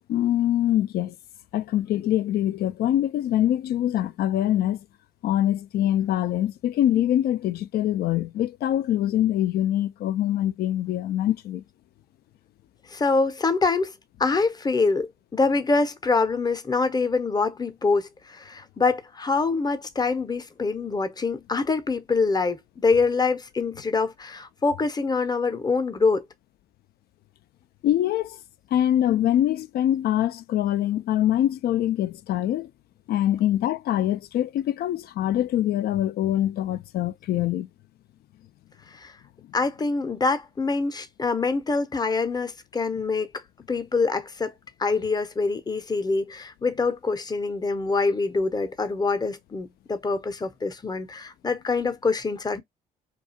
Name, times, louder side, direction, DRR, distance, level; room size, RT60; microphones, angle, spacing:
voice 1, 0.1-1.1 1.5-4.8 5.2-11.6 27.8-28.4 28.7-32.7 33.1-37.7, left 12 dB, 65° left, 0.4 m, -24 dB
voice 2, 12.9-13.9 14.2-26.2 38.9-39.1 39.5-43.3 43.7-44.5 44.8-52.6, left 4 dB, 20° left, 0.7 m, -25 dB
2.4 x 2.3 x 2.7 m
supercardioid pair, 55°, 18 cm